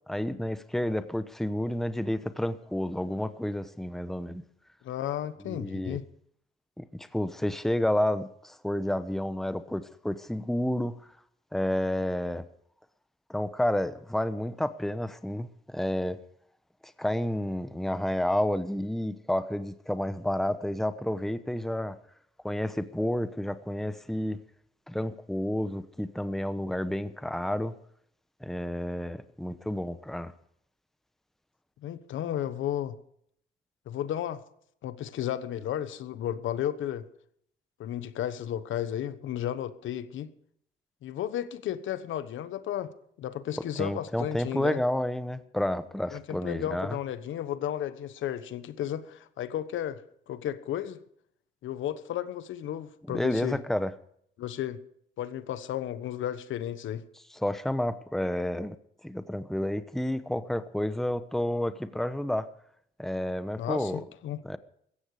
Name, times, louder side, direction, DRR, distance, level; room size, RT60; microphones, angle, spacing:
voice 1, 0.1-4.4 5.4-6.0 6.8-10.9 11.5-12.5 13.3-16.2 17.0-22.0 22.4-24.4 24.9-27.8 28.4-30.3 43.8-47.0 53.1-53.9 57.3-58.8 59.0-62.5 63.0-64.0 64.4-64.6, left 1 dB, ahead, 12 dB, 1.0 m, -30 dB
voice 2, 4.8-6.1 31.8-33.0 33.9-34.4 34.8-37.0 37.8-40.3 41.0-42.9 43.2-44.8 46.1-50.0 50.3-51.0 51.6-53.6 54.4-54.8 55.2-57.0 63.6-64.4, left 11 dB, 75° left, 13 dB, 1.2 m, -33 dB
16.5 x 14.5 x 5.0 m, 0.68 s
cardioid pair, 90°, 20 cm